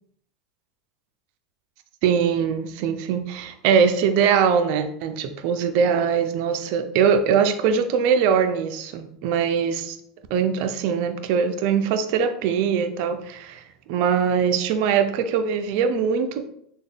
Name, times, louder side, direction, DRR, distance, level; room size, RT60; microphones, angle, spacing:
voice 1, 2.0-10.0 10.3-16.4, right 7 dB, 60° right, 8 dB, 0.4 m, -22 dB
3.7 x 2.2 x 3.4 m, 0.71 s
supercardioid pair, 120°, 4 cm